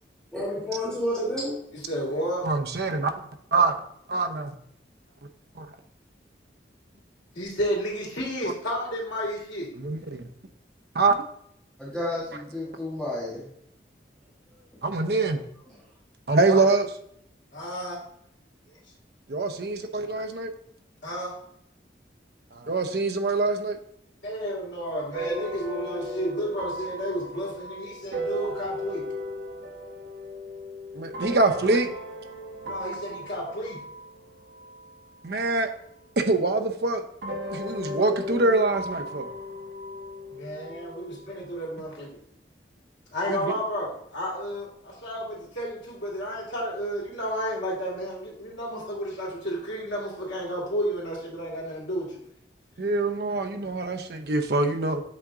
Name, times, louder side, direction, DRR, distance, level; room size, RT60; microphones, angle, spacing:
voice 1, 0.3-1.6 11.8-13.5, left 1 dB, 5° left, -7 dB, 1.4 m, -30 dB
voice 2, 1.7-2.5 7.4-9.7 17.5-18.0 21.0-21.3 24.2-29.1 32.6-33.8 40.3-42.1 43.1-52.2, equal, 90° left, -4 dB, 2.3 m, -32 dB
voice 3, 2.4-3.1 3.5-3.7 4.1-4.5 5.6-5.7 9.8-10.2 10.9-11.1 14.8-15.4 16.3-16.9 19.3-20.5 22.5-23.8 31.0-31.9 35.2-35.7 36.2-37.0 37.5-39.3 43.3-43.4 52.8-55.0, right 3 dB, 60° right, 5 dB, 0.6 m, -24 dB
sound 1, 25.1-35.9 37.2-41.7, left 1 dB, 85° right, 1.0 m, -36 dB
7.8 x 3.6 x 3.8 m, 0.72 s
head